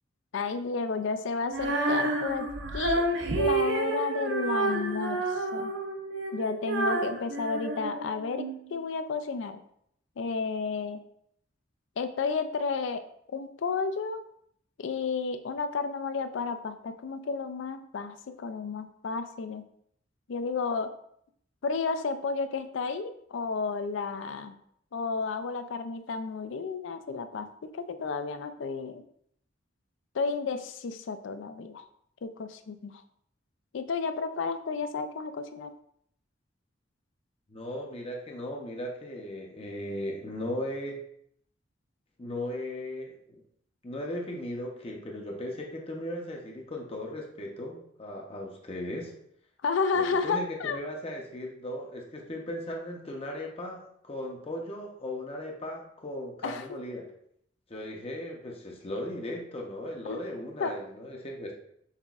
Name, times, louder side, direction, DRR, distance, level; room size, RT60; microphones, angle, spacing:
voice 1, 0.3-3.0 3.3-5.8 6.3-9.6 10.2-11.0 12.0-13.0 13.3-14.2 14.8-19.7 20.3-20.9 21.6-24.6 24.9-29.0 30.1-31.9 32.2-33.0 33.7-35.7 49.6-50.8 56.4-56.6 60.1-60.2 60.6-60.7, left 4 dB, 75° left, 10 dB, 0.4 m, -32 dB
Female singing, 1.5-8.5, right 2 dB, 65° right, 0.6 m, -29 dB
voice 2, 37.5-41.0 42.2-43.4 43.8-49.1 49.9-57.1 57.7-61.5, left 1 dB, 30° left, 0 dB, 0.7 m, -37 dB
5.7 x 3.4 x 2.4 m, 0.69 s
head